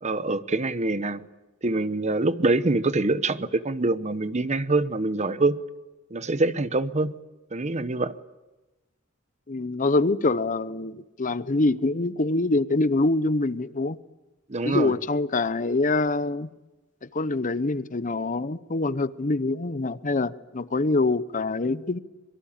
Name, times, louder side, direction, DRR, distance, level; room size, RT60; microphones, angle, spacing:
voice 1, 0.0-1.3 1.6-5.6 6.1-7.1 7.5-8.1 14.5-14.9, right 2 dB, 35° right, 1.0 m, -25 dB
voice 2, 9.5-14.0 14.6-16.5 17.0-22.0, left 2 dB, 40° left, 0.8 m, -25 dB
25.0 x 23.5 x 8.8 m
head